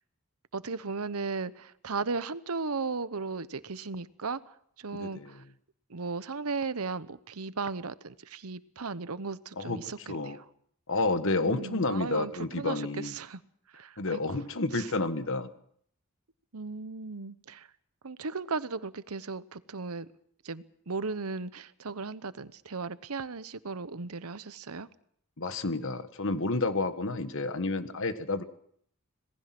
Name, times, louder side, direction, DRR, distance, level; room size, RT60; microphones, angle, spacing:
voice 1, 0.5-5.4 5.9-10.4 11.4-13.4 13.7-14.4 14.7-14.9 16.5-17.7 18.0-20.1 20.4-24.9, right 4 dB, 75° right, 1.0 m, -36 dB
voice 2, 10.9-13.1 14.0-15.5 25.4-28.4, left 3 dB, 60° left, 1.5 m, -30 dB
26.5 x 19.0 x 6.1 m
head